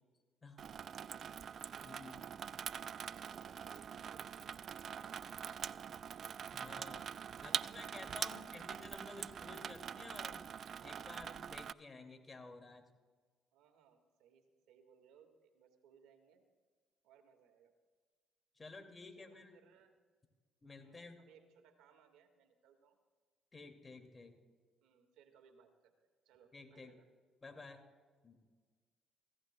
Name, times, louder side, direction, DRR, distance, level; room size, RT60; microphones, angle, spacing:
Water tap faucet / Sink (filling or washing), 0.6-11.7, right 8 dB, 55° right, 0.3 m, -44 dB
voice 1, 0.9-1.3 3.1-6.2 7.3-8.0 8.3-8.6 13.5-16.4 17.0-17.7 19.2-20.0 20.8-23.0 24.8-25.9 26.3-27.1, right 7 dB, 80° right, 6 dB, 1.6 m, -66 dB
voice 2, 1.8-2.3 6.5-7.1 7.4-10.5 10.8-12.8 18.6-19.5 20.6-21.2 23.5-24.4 26.5-26.9 27.4-27.8 28.2-28.4, left 3 dB, 30° left, 5 dB, 2.2 m, -53 dB
25.0 x 16.0 x 2.2 m, 1.5 s
supercardioid pair, 60°, 0 cm